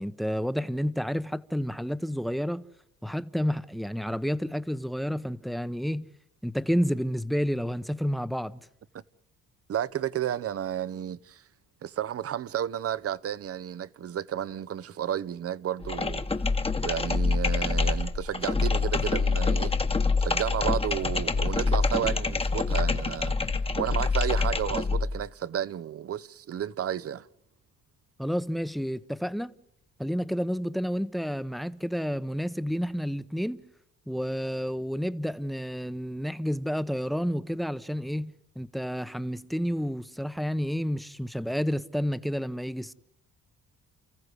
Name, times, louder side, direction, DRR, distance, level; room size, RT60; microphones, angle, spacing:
voice 1, 0.0-2.6 3.0-6.1 6.4-8.6 28.2-29.5 30.0-33.6 34.1-42.9, equal, ahead, 0.8 m, -30 dB
voice 2, 9.7-11.4 11.8-16.3 16.8-19.7 20.2-23.3 23.8-27.3, right 10 dB, 50° right, 0.8 m, -32 dB
sound 1, 15.8-25.1, left 4 dB, 20° left, 1.2 m, -26 dB
30.0 x 15.0 x 8.0 m
cardioid pair, 90°, 30 cm